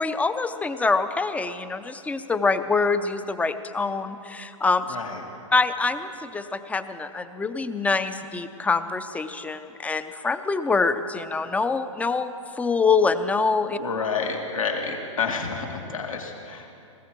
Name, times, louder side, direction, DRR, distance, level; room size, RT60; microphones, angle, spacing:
voice 1, 0.0-4.9 5.5-13.8, left 4 dB, 10° left, 11 dB, 0.5 m, -25 dB
voice 2, 4.9-5.2 13.7-16.7, left 5 dB, 80° left, 2 dB, 2.0 m, -29 dB
19.5 x 16.5 x 4.5 m, 2.7 s
hypercardioid pair, 110°, 17 cm